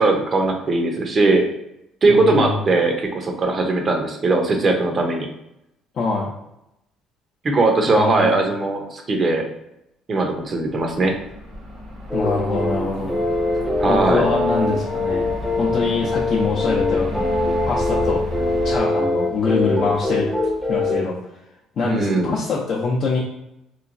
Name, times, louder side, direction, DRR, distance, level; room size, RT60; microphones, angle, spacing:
voice 1, 0.0-1.5 2.0-5.3 7.4-9.5 10.1-11.2 13.8-14.3 21.8-22.4, right 3 dB, 40° right, 3 dB, 0.6 m, -19 dB
voice 2, 2.1-2.5 5.9-6.3 7.9-8.4 12.1-13.2 13.9-15.3 15.6-17.2 17.7-18.2 18.6-20.3 20.7-21.2 21.8-23.2, left 4 dB, 55° left, -5 dB, 0.5 m, -24 dB
sound 1, 10.6-18.8, left 1 dB, 75° right, 1.0 m, -32 dB
sound 2, 12.1-21.0, left 2 dB, 5° left, 0.6 m, -23 dB
3.0 x 2.2 x 2.5 m, 0.85 s
supercardioid pair, 75°, 0 cm